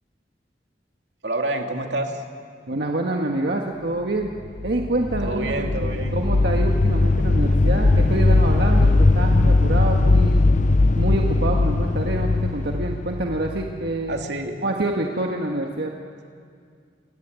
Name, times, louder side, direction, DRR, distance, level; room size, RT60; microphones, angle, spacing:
voice 1, 1.2-2.2 5.2-6.2 14.1-14.7, right 2 dB, 85° right, 3 dB, 2.5 m, -28 dB
voice 2, 2.7-4.3 4.6-10.4 10.9-14.2 14.6-15.9, right 2 dB, 65° right, 1 dB, 1.6 m, -26 dB
sound 1, 4.4-14.2, left 2 dB, 45° left, 0.6 m, -19 dB
28.5 x 18.0 x 9.6 m, 2.2 s
head